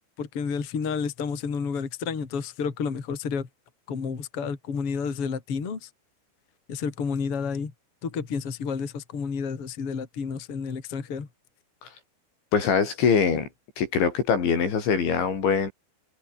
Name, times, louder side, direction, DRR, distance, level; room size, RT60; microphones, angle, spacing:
voice 1, 0.2-3.5 3.9-5.9 6.7-7.7 8.0-11.3, left 5 dB, 35° left, 3.7 m, -30 dB
voice 2, 12.5-13.5 13.8-15.7, left 6 dB, 75° left, 7.6 m, -23 dB
omnidirectional pair, 5.4 m